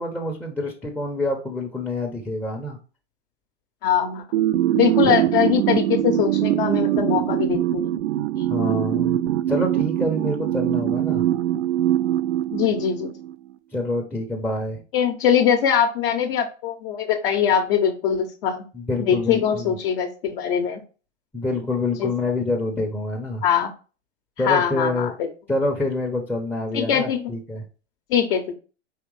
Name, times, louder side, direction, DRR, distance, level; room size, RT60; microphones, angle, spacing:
voice 1, 0.0-2.8 8.5-11.2 13.7-14.8 18.7-19.7 21.3-23.4 24.4-25.1 25.5-27.6, left 2 dB, 5° left, -2 dB, 0.6 m, -26 dB
voice 2, 3.8-4.2 4.7-8.0 10.7-11.0 12.5-13.1 14.9-18.6 19.0-20.8 22.0-22.1 23.4-23.7 24.4-25.3 26.7-27.3 28.1-28.6, left 8 dB, 50° left, 3 dB, 0.8 m, -22 dB
sound 1, 4.3-13.3, right 12 dB, 70° right, 0.6 m, -22 dB
4.9 x 3.2 x 3.1 m, 0.35 s
hypercardioid pair, 100°, 34 cm